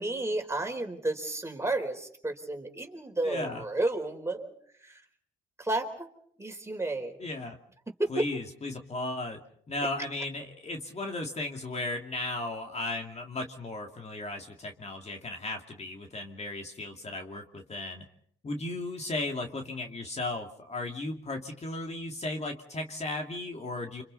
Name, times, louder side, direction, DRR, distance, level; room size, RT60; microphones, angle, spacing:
voice 1, 0.0-4.5 4.8-5.0 5.6-6.1 6.4-7.2 8.0-8.3, right 2 dB, 15° right, 3 dB, 4.3 m, -31 dB
voice 2, 3.2-3.6 7.2-7.6 8.1-9.4 9.7-18.1 18.4-24.0, left 2 dB, 35° left, 3 dB, 2.6 m, -35 dB
30.0 x 26.5 x 4.1 m, 0.65 s
cardioid pair, 90°, 20 cm